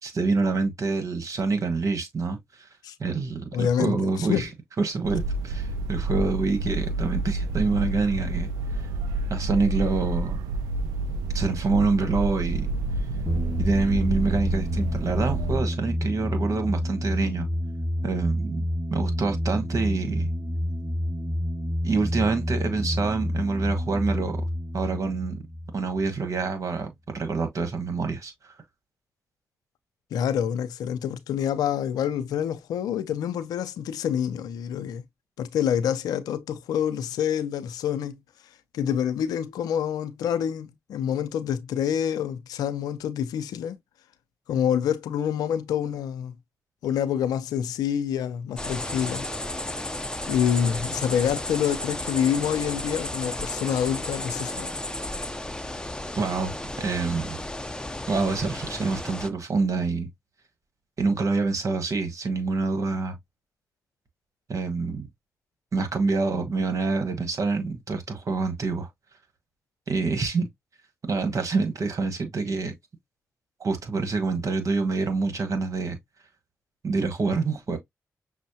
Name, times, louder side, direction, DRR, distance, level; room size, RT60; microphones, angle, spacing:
voice 1, 0.0-2.7 3.0-4.5 4.8-8.5 8.8-8.9 9.3-10.4 11.3-12.7 13.6-17.5 18.0-18.6 18.9-20.3 21.8-24.4 24.7-25.4 25.7-28.5 56.2-57.4 58.1-60.1 61.0-63.1 64.5-65.1 65.7-68.9 69.9-70.5 71.1-72.7 73.6-76.0 76.8-77.8, right 3 dB, 55° right, 1.4 m, -26 dB
voice 2, 3.5-4.5 30.1-35.0 35.4-38.2 38.7-43.8 44.5-46.3 46.8-49.2 50.3-54.7, left 9 dB, 85° left, 0.5 m, -27 dB
sound 1, 5.0-15.6, right 3 dB, 90° right, 0.3 m, -29 dB
sound 2, 13.3-26.5, equal, 10° right, 1.2 m, -29 dB
sound 3, 48.6-59.3, left 1 dB, 10° left, 0.7 m, -33 dB
6.1 x 2.1 x 2.7 m
supercardioid pair, 40°, 6 cm